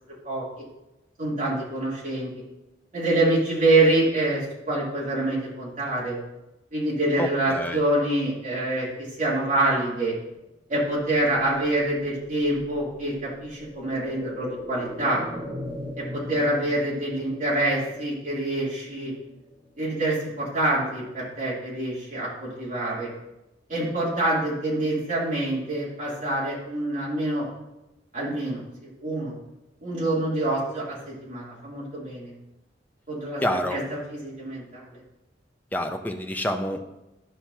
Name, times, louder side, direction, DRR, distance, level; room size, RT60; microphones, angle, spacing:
voice 1, 1.2-2.3 2.9-6.2 6.7-8.9 9.2-10.1 10.7-15.2 16.0-19.1 19.8-23.1 23.7-27.5 28.1-28.6 29.0-29.3 29.8-32.3 33.1-33.8 34.1-35.0, right 1 dB, 45° right, -7 dB, 3.0 m, -26 dB
voice 2, 7.1-7.8 33.4-33.8 35.7-36.8, equal, 10° left, 4 dB, 0.6 m, -28 dB
sound 1, 10.6-20.4 20.8-20.9, equal, 25° right, 1.7 m, -41 dB
11.5 x 5.8 x 2.8 m, 0.94 s
head